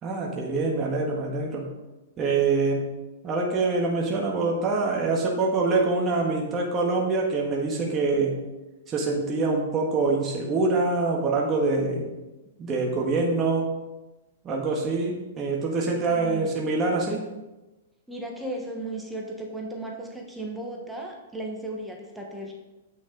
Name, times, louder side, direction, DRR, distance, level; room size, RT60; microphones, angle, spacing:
voice 1, 0.0-1.7 2.2-2.9 3.2-8.3 8.9-12.1 12.6-13.7 14.4-17.2, right 3 dB, 20° right, -2 dB, 1.4 m, -25 dB
voice 2, 16.1-16.5 18.1-22.5, right 1 dB, 5° right, -1 dB, 1.2 m, -35 dB
8.0 x 6.2 x 3.9 m, 1.1 s
hypercardioid pair, 145°, 0 cm